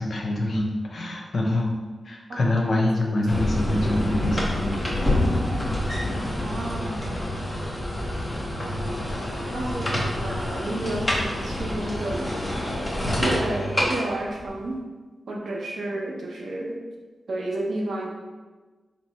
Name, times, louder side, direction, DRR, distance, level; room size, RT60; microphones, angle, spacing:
voice 1, 0.0-1.7 2.0-4.8, left 1 dB, 50° left, 0 dB, 0.6 m, -25 dB
voice 2, 2.3-3.1 6.4-7.0 8.8-12.3 13.2-14.8 15.3-16.8 17.3-18.1, right 1 dB, 70° right, -1 dB, 0.7 m, -31 dB
sound 1, 3.3-14.7, left 1 dB, 10° left, 0.7 m, -27 dB
4.1 x 2.0 x 4.3 m, 1.3 s
wide cardioid pair, 160°, 0 cm